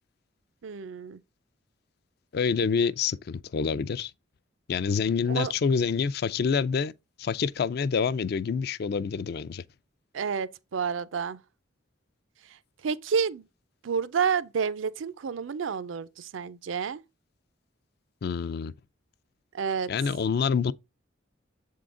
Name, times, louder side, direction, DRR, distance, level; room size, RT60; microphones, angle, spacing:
voice 1, 0.6-1.2 5.3-5.5 10.1-11.4 12.8-13.5 13.8-17.0 19.5-19.9, right 6 dB, 85° right, 0.5 m, -29 dB
voice 2, 2.3-4.1 4.7-6.9 7.2-9.6 18.2-18.7 19.9-20.7, left 6 dB, 55° left, 0.4 m, -27 dB
7.6 x 3.7 x 3.7 m
head